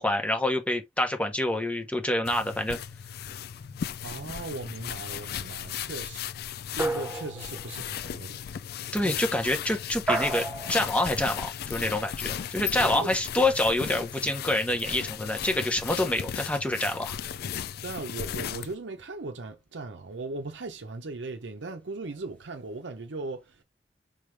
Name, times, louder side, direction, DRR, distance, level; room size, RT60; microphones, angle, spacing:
voice 1, 0.0-2.8 8.9-17.2, left 1 dB, 10° left, 1.0 m, -27 dB
sound 1, 2.3-18.7, left 9 dB, 60° left, 0.3 m, -36 dB
voice 2, 4.0-6.3 6.7-8.4 9.0-9.2 12.8-13.1 17.8-23.6, right 3 dB, 85° right, 0.7 m, -38 dB
sound 2, 6.8-7.8 10.1-10.9, right 2 dB, 10° right, 0.7 m, -30 dB
4.9 x 3.2 x 3.3 m
head